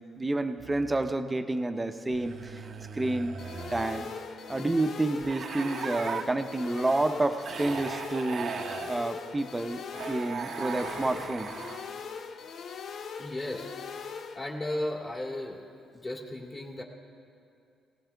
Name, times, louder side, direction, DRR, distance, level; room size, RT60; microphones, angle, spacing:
voice 1, 0.0-2.7 2.9-3.4 3.7-4.1 4.5-8.6 8.9-9.8 10.1-11.5, right 2 dB, 15° right, 8 dB, 0.8 m, -29 dB
sound 1, 0.6-1.1 2.1-4.1 5.2-6.2 7.4-9.0 9.9-12.0, right 6 dB, 55° right, 0.8 m, -38 dB
sound 2, 3.4-14.4, left 6 dB, 60° left, 0.6 m, -41 dB
voice 2, 13.2-13.7 14.3-15.6 15.9-16.8, left 1 dB, 30° left, -1 dB, 2.4 m, -35 dB
19.0 x 17.5 x 3.5 m, 2.5 s
cardioid pair, 90°, 0 cm